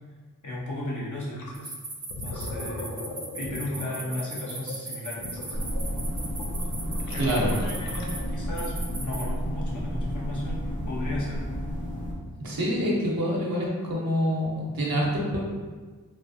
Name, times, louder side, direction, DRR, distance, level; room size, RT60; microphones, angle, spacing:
voice 1, 0.4-1.7 2.2-3.0 3.3-5.6 7.1-8.7 9.0-11.4, left 1 dB, 60° left, -5 dB, 0.9 m, -35 dB
Gurgling, 1.4-1.6 2.0-8.4, left 2 dB, 85° left, 0.5 m, -39 dB
sound 1, 1.5-8.2 8.6-9.2, right 2 dB, 25° right, 0.5 m, -38 dB
sound 2, 5.5-12.1, equal, 25° left, 0.7 m, -31 dB
voice 2, 7.2-7.5 12.4-15.4, equal, 90° right, -4 dB, 0.8 m, -26 dB
3.2 x 2.3 x 2.6 m, 1.4 s
wide cardioid pair, 65°, 34 cm